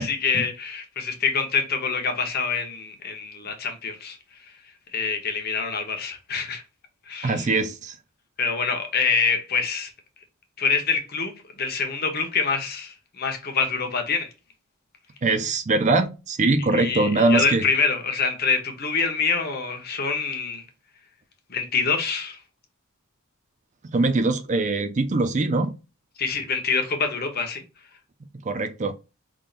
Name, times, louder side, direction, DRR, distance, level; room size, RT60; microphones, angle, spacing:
voice 1, 0.0-4.2 4.9-6.6 7.1-7.5 8.4-9.9 10.6-11.3 11.6-14.3 16.8-20.6 21.5-22.4 26.2-27.6, left 5 dB, 45° left, 1.1 m, -25 dB
voice 2, 7.2-8.0 15.2-17.7 23.9-25.7 28.4-28.9, right 3 dB, 35° right, 0.5 m, -22 dB
5.2 x 3.7 x 2.5 m
head